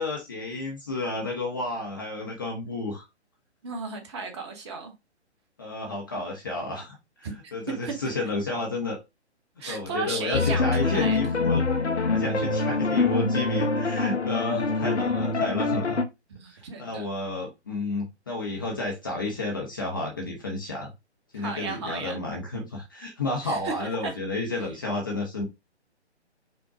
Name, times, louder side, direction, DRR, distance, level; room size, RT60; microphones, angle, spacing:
voice 1, 0.0-3.1 5.6-9.0 9.7-11.6 12.1-16.0 16.8-20.9 21.3-25.4, left 2 dB, 20° left, 0.5 m, -31 dB
voice 2, 3.6-4.9 7.2-7.5 7.8-7.9 9.6-11.2 16.3-17.1 21.3-22.2 23.4-24.1, right 4 dB, 25° right, 0.9 m, -35 dB
sound 1, 10.3-16.0, left 3 dB, 75° left, 0.8 m, -25 dB
5.2 x 2.1 x 4.6 m
figure-of-eight pair, 135°, 34 cm